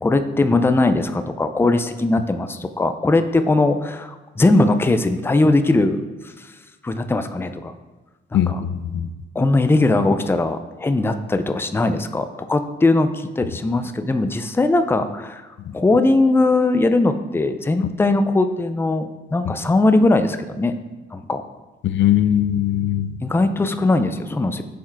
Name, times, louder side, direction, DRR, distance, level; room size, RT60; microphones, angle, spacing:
voice 1, 0.0-6.5 6.8-7.7 8.3-8.6 9.3-15.5 15.7-20.7 21.1-21.4 23.2-24.6, left 2 dB, 10° left, 9 dB, 0.5 m, -20 dB
voice 2, 8.3-9.1 21.8-23.1, left 11 dB, 70° left, 11 dB, 0.5 m, -20 dB
7.3 x 4.5 x 4.6 m, 1.2 s
cardioid pair, 90°, 20 cm